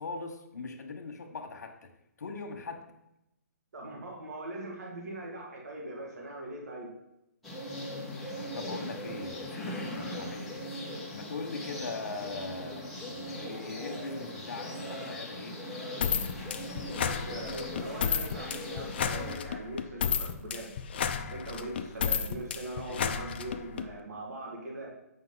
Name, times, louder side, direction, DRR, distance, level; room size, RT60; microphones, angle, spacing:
voice 1, 0.0-1.9 2.2-2.8 8.5-15.6 22.8-23.2, left 4 dB, 75° left, 4 dB, 1.3 m, -41 dB
voice 2, 3.7-6.9 17.0-20.8 21.3-24.9, right 1 dB, 65° right, -1 dB, 2.1 m, -41 dB
sound 1, 7.4-19.4, left 1 dB, ahead, 1.1 m, -39 dB
sound 2, 16.0-23.9, left 7 dB, 35° left, 0.5 m, -32 dB
8.4 x 5.8 x 4.0 m, 0.87 s
hypercardioid pair, 170°, 9 cm